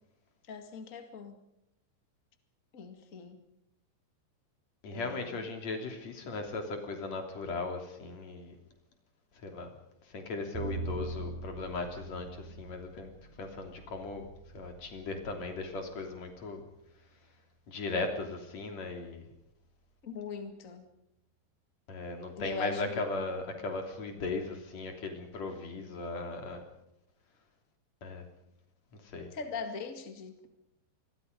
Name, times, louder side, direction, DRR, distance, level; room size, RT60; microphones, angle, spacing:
voice 1, 0.5-1.4 2.7-3.4 4.9-5.4 20.0-20.9 22.3-23.1 29.3-30.5, left 5 dB, 70° left, 6 dB, 0.7 m, -41 dB
voice 2, 4.8-8.6 9.4-9.7 10.1-13.1 13.4-14.3 14.5-16.6 17.7-19.2 21.9-26.6 28.0-28.2 29.1-29.3, left 3 dB, 40° left, 4 dB, 3.8 m, -37 dB
Bowed string instrument, 10.5-16.7, right 3 dB, 75° right, 10.5 m, -43 dB
27.5 x 21.0 x 5.3 m, 0.83 s
omnidirectional pair, 5.2 m